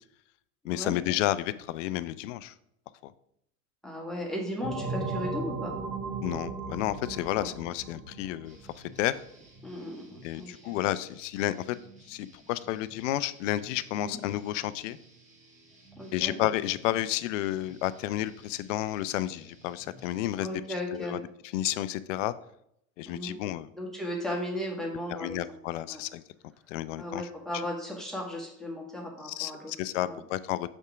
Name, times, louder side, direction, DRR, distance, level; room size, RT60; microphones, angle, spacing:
voice 1, 0.6-2.5 3.0-3.1 6.2-9.2 10.2-11.8 12.1-15.0 16.1-20.5 20.9-21.2 21.5-22.3 23.0-23.7 25.1-26.2 26.7-27.3 29.3-30.7, left 14 dB, 60° left, 16 dB, 0.5 m, -31 dB
voice 2, 3.8-5.7 7.3-7.5 9.6-10.7 14.0-14.2 16.0-16.3 20.4-21.2 23.0-23.4 23.8-25.4 25.9-26.0 27.0-29.7 30.0-30.2, left 1 dB, ahead, -2 dB, 1.6 m, -36 dB
sound 1, 4.6-9.0, right 4 dB, 75° right, 1.2 m, -36 dB
sound 2, 8.5-20.5, right 2 dB, 15° right, 1.8 m, -56 dB
5.4 x 3.5 x 4.9 m, 0.76 s
hypercardioid pair, 90°, 44 cm